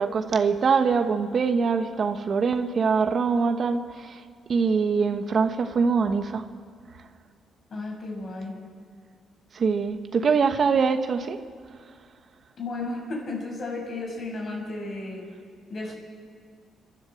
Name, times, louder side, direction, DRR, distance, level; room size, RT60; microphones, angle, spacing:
voice 1, 0.0-4.2 4.5-6.4 9.5-11.4, right 5 dB, 50° right, 8 dB, 1.2 m, -23 dB
voice 2, 7.7-8.5 12.6-15.3 15.7-16.0, left 2 dB, 50° left, 1 dB, 6.4 m, -33 dB
29.5 x 13.0 x 7.9 m, 2.1 s
cardioid pair, 90°, 0 cm